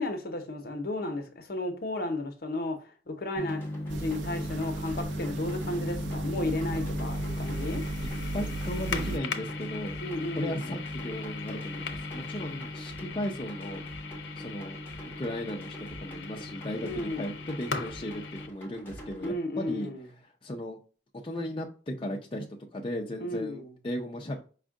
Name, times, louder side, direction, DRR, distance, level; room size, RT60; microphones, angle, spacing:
voice 1, 0.0-7.9 10.0-10.7 16.8-17.3 19.2-20.1 23.2-23.7, left 2 dB, 60° left, 0.8 m, -34 dB
sound 1, 3.4-18.5, left 2 dB, 90° left, 0.6 m, -37 dB
sound 2, 3.4-19.4, right 1 dB, 10° left, 1.1 m, -46 dB
sound 3, 3.9-9.2, right 3 dB, 85° right, 0.4 m, -37 dB
voice 2, 8.3-10.0 10.3-13.8 14.4-14.8 15.2-19.9 20.4-20.8 21.2-22.5 22.7-24.4, left 1 dB, 30° left, 0.6 m, -36 dB
5.1 x 2.4 x 3.6 m
head